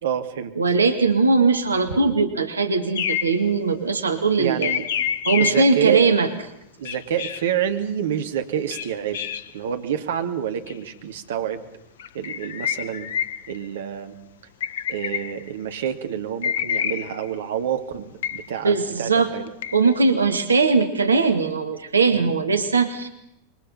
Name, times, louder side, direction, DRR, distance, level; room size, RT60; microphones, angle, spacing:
voice 1, 0.0-0.6 4.4-4.8 5.4-6.0 6.8-9.2 9.5-11.6 12.1-13.1 13.5-14.2 14.9-19.4 22.1-22.3, right 9 dB, 60° right, 7 dB, 2.3 m, -28 dB
voice 2, 0.6-4.7 5.3-6.3 18.6-19.3 19.7-23.1, right 4 dB, 75° right, 8 dB, 2.0 m, -20 dB
sound 1, 2.9-3.5 4.6-5.8 6.8-7.5 8.7-9.5 10.7-10.8 12.0-13.6 14.6-15.5 16.4-17.3 18.2-18.6 19.5-20.0, left 9 dB, 60° left, 1.1 m, -28 dB
27.0 x 24.0 x 5.7 m, 0.83 s
figure-of-eight pair, 90°, 0 cm